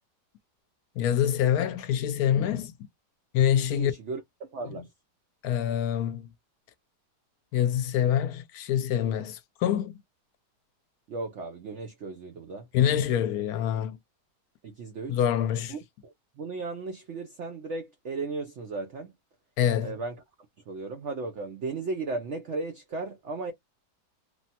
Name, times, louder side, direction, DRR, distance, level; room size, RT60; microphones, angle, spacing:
voice 1, 1.0-2.7 3.3-3.9 5.4-6.3 7.5-9.9 12.7-14.0 15.1-15.7 19.6-20.0, left 10 dB, 70° left, 1.0 m, -25 dB
voice 2, 3.7-4.9 11.1-12.7 14.6-15.2 15.7-19.1 19.8-20.2 20.7-23.5, right 3 dB, 75° right, 0.6 m, -36 dB
3.2 x 2.0 x 2.8 m
omnidirectional pair, 1.9 m